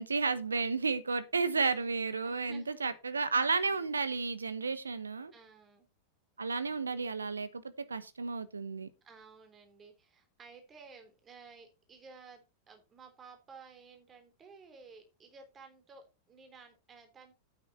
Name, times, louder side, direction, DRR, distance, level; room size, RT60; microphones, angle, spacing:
voice 1, 0.0-5.3 6.4-7.6 7.9-8.9, right 4 dB, 75° right, 1.0 m, -32 dB
voice 2, 2.2-2.8 5.3-5.9 9.0-17.3, right 5 dB, 20° right, 3.3 m, -54 dB
9.2 x 9.0 x 4.0 m
figure-of-eight pair, 90°, 0 cm